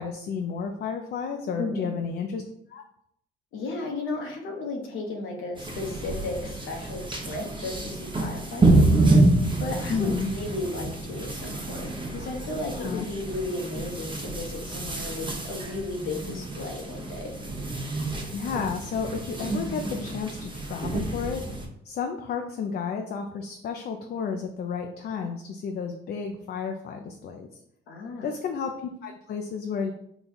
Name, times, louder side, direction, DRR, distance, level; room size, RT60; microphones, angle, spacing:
voice 1, 0.0-2.4 2.7-2.8 9.9-10.3 12.8-13.1 18.3-21.4 21.8-27.6 28.2-29.9, left 6 dB, 55° left, 3 dB, 0.4 m, -32 dB
voice 2, 1.6-1.9 3.5-9.2 9.6-17.3 27.9-28.3, left 2 dB, 85° left, 1 dB, 0.9 m, -34 dB
sound 1, 5.5-21.7, right 2 dB, 25° right, 0.8 m, -27 dB
3.9 x 2.3 x 4.2 m, 0.74 s
cardioid pair, 90°, 20 cm